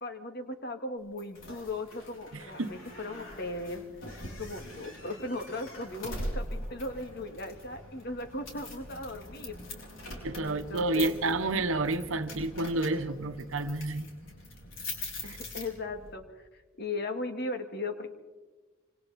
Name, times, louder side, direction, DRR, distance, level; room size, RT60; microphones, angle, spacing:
voice 1, 0.0-3.9 4.3-9.6 10.4-11.1 15.2-18.2, left 2 dB, 50° left, 6 dB, 2.0 m, -37 dB
sound 1, 1.2-16.1, left 1 dB, 65° left, 6.2 m, -42 dB
voice 2, 2.3-2.7 10.2-14.1 15.2-15.4, right 2 dB, 70° right, 9 dB, 1.1 m, -30 dB
26.5 x 26.0 x 4.2 m, 1.2 s
head